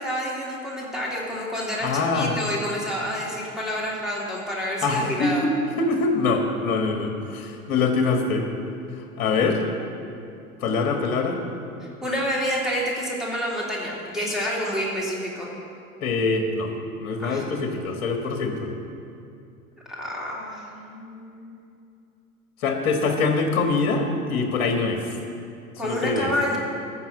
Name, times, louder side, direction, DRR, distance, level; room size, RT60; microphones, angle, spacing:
voice 1, 0.0-5.4 12.0-15.5 17.2-17.4 19.9-21.7 25.8-26.6, equal, ahead, -5 dB, 2.9 m, -28 dB
voice 2, 1.8-2.4 4.8-5.5 5.8-8.5 8.9-9.6 10.6-11.4 16.0-16.7 17.0-18.7 22.6-25.0 25.8-26.3, left 4 dB, 45° left, 3 dB, 1.6 m, -24 dB
13.5 x 6.4 x 7.6 m, 2.6 s
figure-of-eight pair, 85°, 44 cm